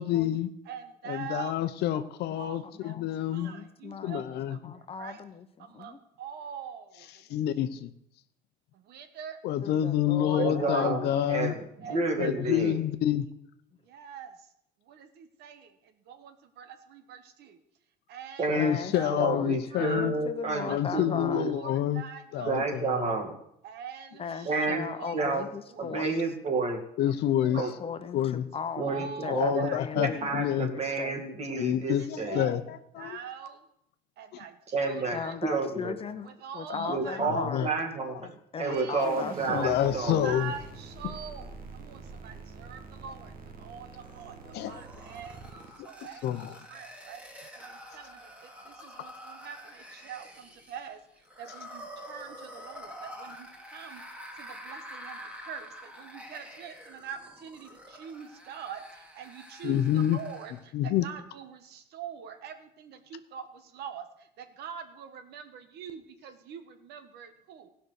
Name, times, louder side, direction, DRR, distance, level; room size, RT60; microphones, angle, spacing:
voice 1, 0.0-0.5 1.1-3.5 4.0-4.6 7.3-7.9 9.4-11.5 12.2-13.3 18.5-20.1 20.7-22.0 22.3-23.1 27.0-27.6 28.1-28.5 29.3-30.7 31.6-32.6 33.0-33.2 37.2-37.7 38.0-38.1 39.5-40.5 44.5-44.8 46.2-46.5 59.6-60.2 60.7-61.1, left 11 dB, 75° left, 11 dB, 0.8 m, -28 dB
voice 2, 0.7-1.6 1.9-2.1 2.3-2.9 3.3-4.6 5.0-5.2 5.6-7.4 8.9-9.4 10.1-11.4 11.8-12.0 12.4-12.5 13.9-14.3 14.9-15.7 16.1-17.6 18.1-19.2 19.7-20.1 20.7-21.1 21.3-22.6 23.6-26.2 27.4-27.6 28.8-29.8 30.1-30.3 32.0-32.5 33.0-33.6 34.2-35.4 36.2-37.2 38.6-39.1 39.5-46.4 46.7-47.2 47.6-48.2 48.6-51.0 51.4-54.0 54.4-58.8 59.1-64.0 64.4-67.7, right 8 dB, 80° right, 8 dB, 1.4 m, -44 dB
voice 3, 3.4-4.2 4.6-6.0 9.6-11.3 12.2-12.8 18.5-21.5 24.2-26.1 27.5-30.4 30.8-31.2 35.1-37.7 38.5-39.8, left 6 dB, 35° left, 10 dB, 1.0 m, -38 dB
voice 4, 10.3-11.6 11.9-12.8 18.4-18.7 19.1-21.5 22.4-23.3 24.5-25.4 25.8-26.8 27.6-27.7 28.8-29.1 29.3-32.4 34.7-36.0 36.9-38.3 38.6-40.4, right 3 dB, 40° right, 3 dB, 2.2 m, -30 dB
sound 1, 39.0-45.7, right 4 dB, 55° right, 1.7 m, -45 dB
sound 2, 44.0-60.7, equal, 10° right, 2.1 m, -47 dB
16.5 x 5.8 x 6.5 m, 0.76 s
cardioid pair, 110°, 17 cm